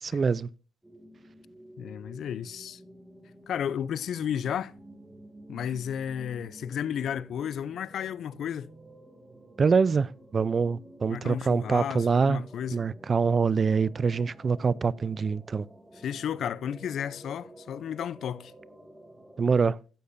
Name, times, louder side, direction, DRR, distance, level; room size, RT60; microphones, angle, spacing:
voice 1, 0.0-0.5 9.6-12.4 12.7-15.7 19.4-19.8, right 5 dB, 40° right, 0.4 m, -25 dB
sound 1, 0.8-19.4, right 1 dB, 10° right, 2.5 m, -51 dB
voice 2, 1.8-2.8 3.5-4.7 5.5-8.7 11.1-12.8 15.9-18.5, left 9 dB, 70° left, 0.5 m, -33 dB
14.5 x 8.6 x 2.6 m
cardioid pair, 85°, 0 cm